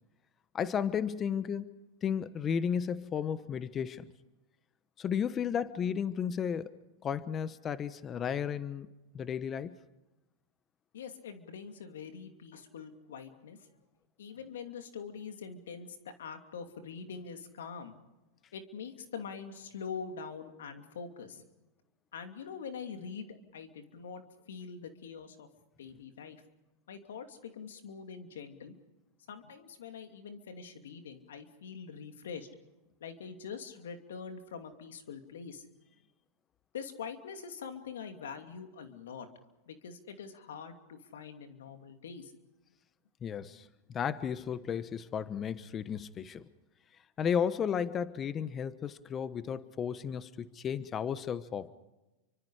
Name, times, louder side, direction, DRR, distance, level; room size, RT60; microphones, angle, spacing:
voice 1, 0.5-1.7 2.0-4.0 5.0-8.9 9.1-9.7 43.2-46.5 47.2-51.7, left 7 dB, 30° left, 14 dB, 1.1 m, -33 dB
voice 2, 10.9-13.6 14.2-18.0 18.5-21.4 22.1-25.5 25.8-26.4 26.9-28.7 29.3-32.5 33.0-35.7 36.7-39.3 39.7-42.3, left 6 dB, 80° left, 6 dB, 2.8 m, -44 dB
29.5 x 24.5 x 5.0 m, 1.0 s
hypercardioid pair, 105°, 0 cm